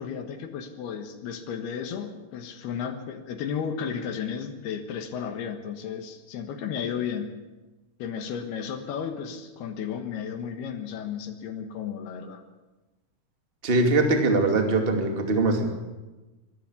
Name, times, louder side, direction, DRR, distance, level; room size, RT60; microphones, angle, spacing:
voice 1, 0.0-7.3 8.0-12.4, left 7 dB, 75° left, 7 dB, 3.3 m, -33 dB
voice 2, 13.6-15.7, right 2 dB, 20° right, 4 dB, 1.7 m, -22 dB
23.5 x 11.5 x 9.8 m, 1.2 s
omnidirectional pair, 4.7 m